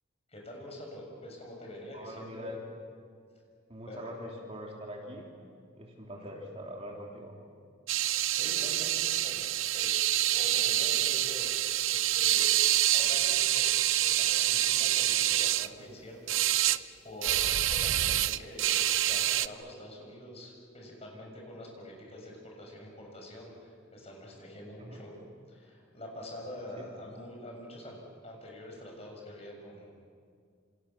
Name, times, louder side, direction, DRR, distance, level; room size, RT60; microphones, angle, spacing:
voice 1, 0.3-2.6 3.9-4.1 6.2-6.4 8.3-9.5 9.7-11.5 11.8-16.8 17.0-25.2 25.5-29.9, left 1 dB, 30° left, 0 dB, 7.0 m, -45 dB
voice 2, 1.9-2.6 3.7-5.3 5.7-7.3 24.8-25.1 26.8-26.9, equal, 30° right, -1 dB, 3.2 m, -43 dB
sound 1, 7.9-15.7 16.3-16.8 17.2-19.5, right 13 dB, 90° right, 0.7 m, -27 dB
28.0 x 28.0 x 7.2 m, 2.1 s
head